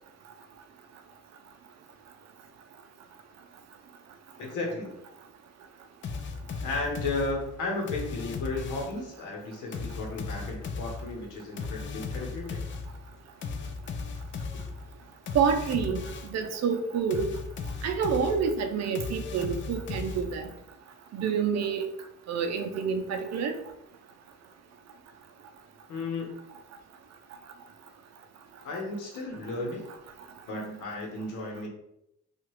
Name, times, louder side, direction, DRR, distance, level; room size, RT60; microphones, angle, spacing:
voice 1, 4.4-4.9 6.6-12.6 14.5-14.6 25.9-26.3 28.6-29.8 30.5-31.7, left 2 dB, 80° left, 0 dB, 1.0 m, -34 dB
sound 1, 6.0-9.1 9.7-16.5 17.1-20.6, left 4 dB, 40° left, 0.4 m, -37 dB
voice 2, 15.3-17.3 17.8-20.5 21.1-21.9 22.3-23.5, right 6 dB, 60° right, 6 dB, 0.5 m, -28 dB
2.8 x 2.4 x 3.0 m, 0.81 s
cardioid pair, 90°, 30 cm